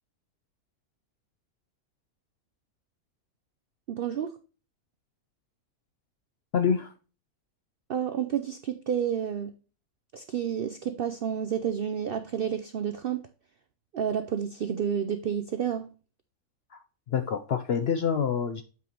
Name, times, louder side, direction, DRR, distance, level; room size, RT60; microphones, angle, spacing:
voice 1, 3.9-4.3 7.9-9.5 10.1-13.2 13.9-15.9, right 8 dB, 75° right, 0.5 m, -30 dB
voice 2, 6.5-6.9 16.7-16.8 17.1-18.6, left 7 dB, 65° left, 0.6 m, -26 dB
8.1 x 4.8 x 2.9 m
omnidirectional pair, 1.6 m